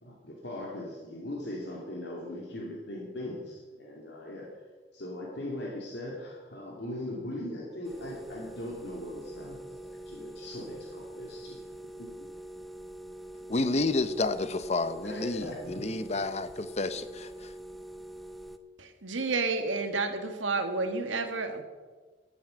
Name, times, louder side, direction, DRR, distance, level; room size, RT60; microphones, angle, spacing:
voice 1, 0.0-4.5 4.9-11.6 12.0-12.1 15.0-15.9, left 1 dB, 60° left, -2 dB, 2.6 m, -39 dB
sound 1, 7.8-18.6, right 1 dB, ahead, 0.7 m, -44 dB
voice 2, 13.5-17.5, left 2 dB, 35° left, 12 dB, 0.8 m, -30 dB
voice 3, 18.8-21.6, right 3 dB, 90° right, 6 dB, 1.8 m, -30 dB
14.0 x 9.2 x 7.7 m, 1.4 s
head